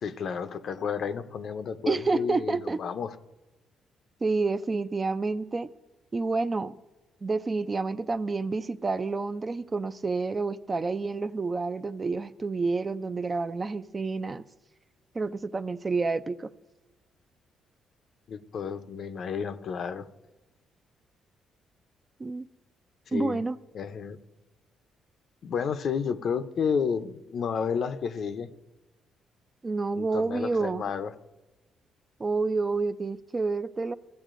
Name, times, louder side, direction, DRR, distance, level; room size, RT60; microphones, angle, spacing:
voice 1, 0.0-3.1 18.3-20.1 23.1-23.4 23.7-24.2 25.4-28.5 29.9-31.1, left 6 dB, 60° left, 10 dB, 0.5 m, -31 dB
voice 2, 1.9-2.8 4.2-5.7 6.1-6.7 7.2-14.4 15.1-16.5 22.2-22.4 23.1-23.6 29.6-30.8 32.2-33.9, right 3 dB, 30° right, 12 dB, 0.3 m, -29 dB
15.5 x 8.1 x 2.5 m, 1.1 s
cardioid pair, 90°, 0 cm